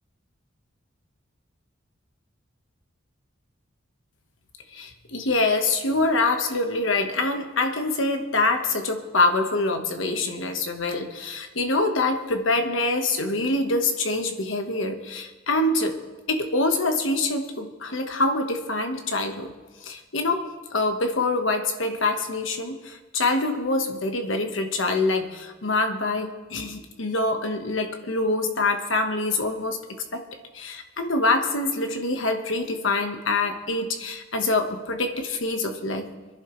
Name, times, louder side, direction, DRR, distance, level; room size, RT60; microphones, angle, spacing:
voice 1, 4.7-16.0 16.3-19.5 19.8-30.2 30.5-36.1, left 2 dB, 70° left, 6 dB, 1.3 m, -25 dB
23.5 x 11.0 x 3.2 m, 1.3 s
head